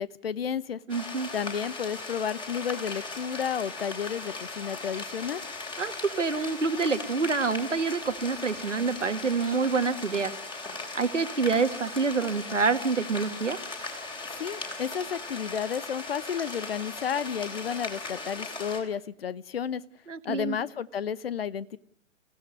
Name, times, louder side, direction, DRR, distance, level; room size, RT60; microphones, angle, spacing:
voice 1, 0.0-0.8 1.3-5.4 14.3-19.8 20.2-21.8, left 8 dB, 50° left, 20 dB, 0.9 m, -32 dB
sound 1, 0.9-18.8, left 3 dB, 10° left, 3.4 m, -38 dB
voice 2, 0.9-1.3 5.8-10.3 10.9-13.6 20.1-20.6, right 4 dB, 70° right, 10 dB, 2.0 m, -27 dB
26.0 x 16.0 x 9.7 m, 0.64 s
figure-of-eight pair, 120°, 38 cm